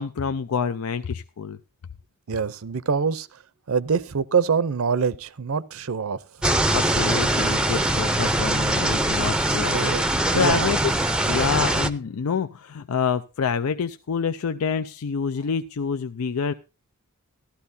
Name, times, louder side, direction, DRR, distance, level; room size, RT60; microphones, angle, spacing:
voice 1, 0.0-1.6 6.7-16.5, left 6 dB, 75° left, 0.5 m, -27 dB
voice 2, 2.3-3.3 3.7-6.2 9.7-10.0 10.3-10.7, right 6 dB, 70° right, 0.6 m, -24 dB
sound 1, 6.4-11.9, right 1 dB, 5° right, 0.5 m, -22 dB
14.5 x 12.5 x 2.7 m
head